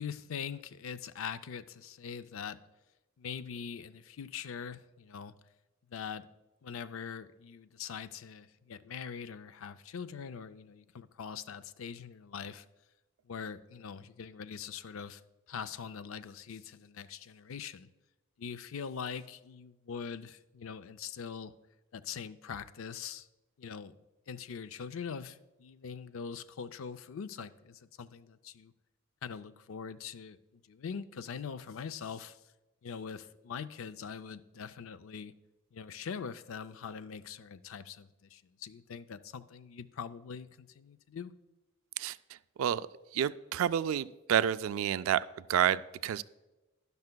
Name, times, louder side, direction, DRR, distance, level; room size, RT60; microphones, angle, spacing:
voice 1, 0.0-2.6 3.2-5.3 5.9-6.3 6.6-12.6 13.3-15.2 15.5-17.9 18.4-21.5 21.9-23.3 23.6-23.9 24.3-28.7 29.2-30.4 30.7-32.4 32.8-35.3 35.7-41.3, left 6 dB, 70° left, 12 dB, 0.4 m, -42 dB
voice 2, 43.1-45.2 45.5-46.2, right 9 dB, 70° right, 16 dB, 0.3 m, -29 dB
12.0 x 10.5 x 2.2 m, 1.1 s
head